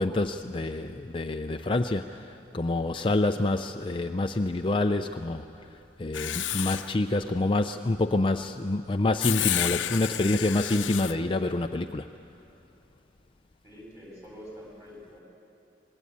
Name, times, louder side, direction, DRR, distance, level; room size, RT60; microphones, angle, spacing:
voice 1, 0.0-12.1, left 2 dB, 25° left, 6 dB, 0.5 m, -27 dB
Writing, 6.1-6.9 9.2-11.1, left 12 dB, 80° left, 0.7 m, -30 dB
voice 2, 13.6-15.2, equal, 15° right, -3 dB, 7.9 m, -46 dB
25.5 x 20.5 x 8.5 m, 2.8 s
head